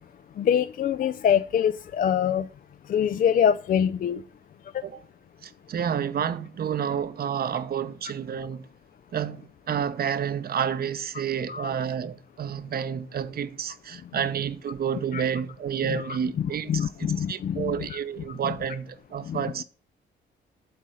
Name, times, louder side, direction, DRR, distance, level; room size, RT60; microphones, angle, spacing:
voice 1, 0.4-2.5 2.9-4.2 11.5-11.7 15.1-15.2 15.9-17.8 19.3-19.4, left 8 dB, 45° left, 0.4 m, -24 dB
voice 2, 5.4-8.7 9.1-19.6, right 8 dB, 50° right, 0.8 m, -30 dB
8.0 x 4.1 x 6.2 m
cardioid pair, 90°, 20 cm